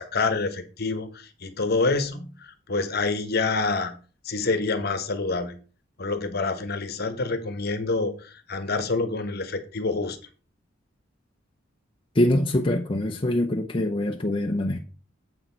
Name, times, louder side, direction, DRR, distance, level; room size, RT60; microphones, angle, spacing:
voice 1, 0.0-3.9 4.2-5.6 6.0-10.2, left 3 dB, 55° left, 1.1 m, -27 dB
voice 2, 12.1-14.8, left 1 dB, 25° left, 0.6 m, -24 dB
7.8 x 6.2 x 4.5 m
head